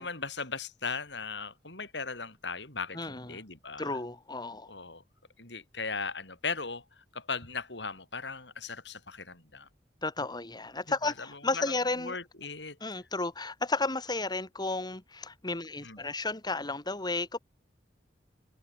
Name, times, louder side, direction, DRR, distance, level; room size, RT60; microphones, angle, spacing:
voice 1, 0.0-4.0 4.7-5.0 5.4-9.7 11.0-11.6 12.0-12.8 15.8-16.0, left 4 dB, 70° left, 7.7 m, -38 dB
voice 2, 2.9-3.4 3.8-4.7 10.0-12.1 12.8-17.4, left 3 dB, 25° left, 3.0 m, -33 dB
head